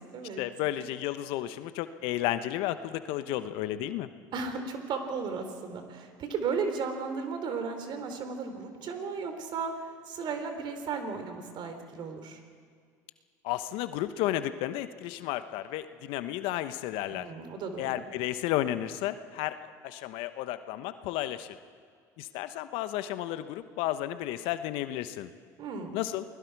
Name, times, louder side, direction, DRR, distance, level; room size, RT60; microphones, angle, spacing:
voice 1, 0.4-4.1 13.4-17.3 17.8-21.6 22.2-25.3 25.9-26.2, left 13 dB, 70° left, 11 dB, 1.1 m, -32 dB
voice 2, 4.3-12.4 17.1-18.0 25.6-26.0, right 5 dB, 55° right, 7 dB, 3.4 m, -35 dB
29.0 x 20.5 x 4.8 m, 2.1 s
hypercardioid pair, 80°, 10 cm